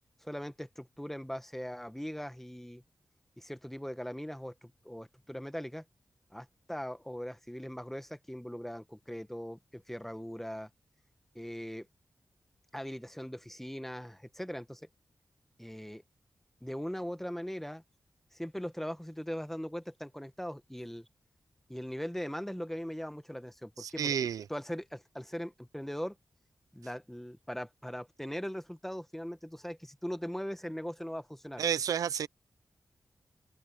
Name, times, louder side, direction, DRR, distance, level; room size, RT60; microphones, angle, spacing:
voice 1, 0.2-2.8 3.4-5.8 6.3-10.7 11.4-11.9 12.7-14.8 15.6-16.0 16.6-17.8 18.3-21.1 21.7-24.1 24.5-26.2 26.7-31.6, equal, 5° left, 1.6 m, -40 dB
voice 2, 23.8-24.4 31.6-32.3, right 8 dB, 90° right, 0.7 m, -31 dB
open air
cardioid pair, 40°, 6 cm